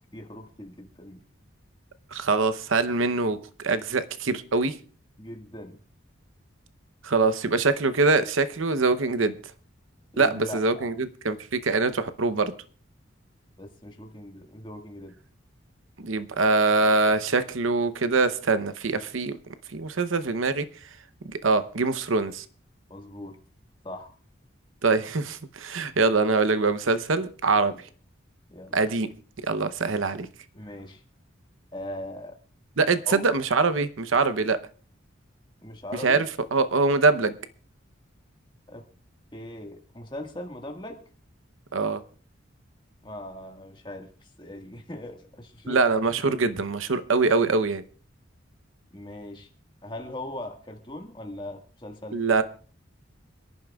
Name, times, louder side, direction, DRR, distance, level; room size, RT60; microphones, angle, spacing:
voice 1, 0.1-1.2 5.2-5.8 10.1-10.9 13.6-15.1 22.9-23.4 23.8-24.1 27.5-27.8 28.5-28.8 30.5-31.0 31.7-32.3 33.1-33.3 35.6-36.2 38.7-38.9 39.3-41.0 43.0-45.8 48.9-49.5 49.8-52.2, left 1 dB, 25° left, 2 dB, 1.6 m, -40 dB
voice 2, 2.1-4.8 7.0-9.3 10.2-12.5 16.0-19.4 19.7-20.7 21.2-22.4 24.8-27.7 28.7-29.1 29.4-30.3 32.8-34.6 36.0-36.3 36.5-37.4 41.7-42.0 45.7-47.8 52.1-52.4, right 3 dB, 75° right, 12 dB, 0.8 m, -23 dB
27.5 x 11.0 x 2.3 m, 0.40 s
head